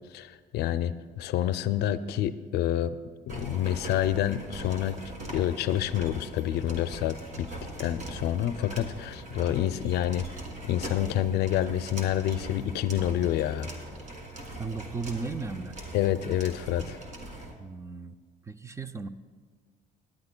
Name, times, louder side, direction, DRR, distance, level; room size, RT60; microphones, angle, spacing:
voice 1, 0.1-3.0 3.3-5.0 5.3-7.5 7.8-10.3 10.6-13.7 15.9-17.0, left 11 dB, 75° left, 13 dB, 0.5 m, -28 dB
sound 1, 3.3-17.5, right 1 dB, 45° right, 1.9 m, -41 dB
voice 2, 14.6-15.8 17.6-18.2 18.5-19.1, right 4 dB, 15° right, 11 dB, 0.4 m, -35 dB
18.0 x 10.5 x 2.2 m, 1.5 s
cardioid pair, 110°, 17 cm